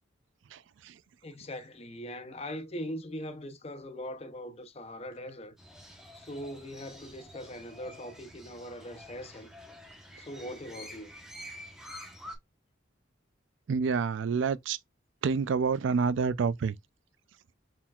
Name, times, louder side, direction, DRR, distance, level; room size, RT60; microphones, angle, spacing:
voice 1, 1.2-5.6 5.9-9.5 10.2-11.2, equal, 30° left, 0.6 m, -41 dB
Crow, 5.6-12.4, equal, 5° right, 1.0 m, -48 dB
voice 2, 13.7-14.8 15.2-16.7, right 5 dB, 75° right, 0.4 m, -28 dB
4.3 x 3.8 x 2.3 m
head